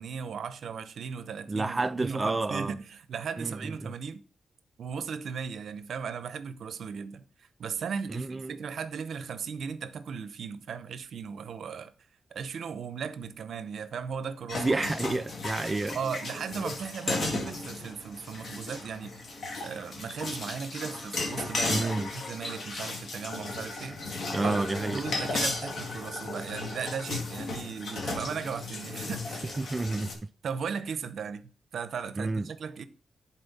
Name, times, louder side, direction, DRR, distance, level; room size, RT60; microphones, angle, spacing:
voice 1, 0.0-4.2 4.8-11.9 12.3-14.7 15.9-19.1 19.6-24.0 24.4-29.6 30.4-32.8, right 6 dB, 75° right, 0.6 m, -37 dB
voice 2, 1.5-2.7 3.4-3.9 8.1-8.6 14.5-16.0 21.7-22.1 24.3-25.0 29.6-30.1 32.2-32.5, right 3 dB, 25° right, 0.3 m, -30 dB
sound 1, 14.5-30.1, left 3 dB, 60° left, 2.0 m, -35 dB
10.5 x 4.2 x 4.1 m
cardioid pair, 90°, 0 cm